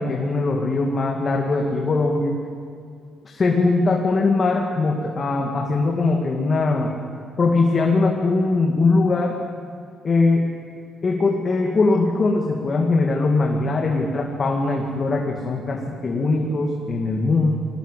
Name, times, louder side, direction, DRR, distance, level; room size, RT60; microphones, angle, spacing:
voice 1, 0.0-2.4 3.2-6.9 7.4-9.3 10.0-10.5 11.0-17.5, left 3 dB, 35° left, 1 dB, 2.2 m, -21 dB
20.5 x 18.5 x 8.3 m, 2.3 s
cardioid pair, 105°, 0 cm